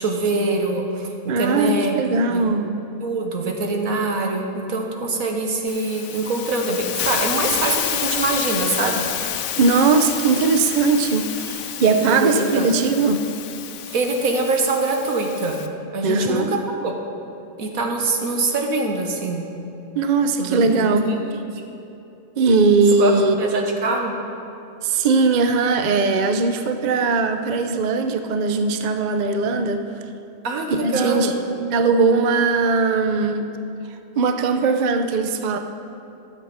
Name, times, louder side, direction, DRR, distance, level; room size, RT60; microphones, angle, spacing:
voice 1, 0.0-2.0 2.3-2.4 3.0-4.4 4.7-9.0 12.1-12.7 13.9-15.6 15.9-17.0 17.6-19.5 20.4-21.4 23.0-23.1 23.4-24.1 30.4-31.3, right 3 dB, 80° right, 2 dB, 1.6 m, -24 dB
voice 2, 1.3-2.7 9.6-13.3 16.0-16.5 20.0-21.1 22.4-23.3 24.8-29.9 30.8-33.5 34.2-35.6, right 4 dB, 50° right, 7 dB, 0.5 m, -19 dB
Hiss, 5.7-15.7, left 10 dB, 80° left, 1.0 m, -29 dB
12.5 x 7.2 x 5.6 m, 2.8 s
omnidirectional pair, 1.4 m